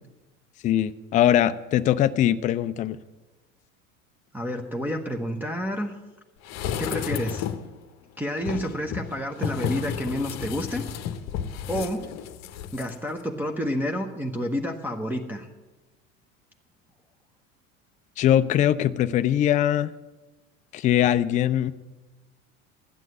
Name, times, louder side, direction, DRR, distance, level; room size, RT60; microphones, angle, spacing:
voice 1, 0.6-3.0 18.2-19.9 20.7-21.7, left 11 dB, 20° left, 12 dB, 0.3 m, -21 dB
voice 2, 4.3-6.0 6.8-7.5 8.2-10.9 11.7-12.1 12.7-15.5, equal, 5° right, -1 dB, 0.9 m, -29 dB
sound 1, 6.4-7.7 8.4-12.9 13.2-13.3, left 8 dB, 40° left, 0.9 m, -32 dB
12.5 x 9.3 x 7.6 m, 1.2 s
hypercardioid pair, 80°, 40 cm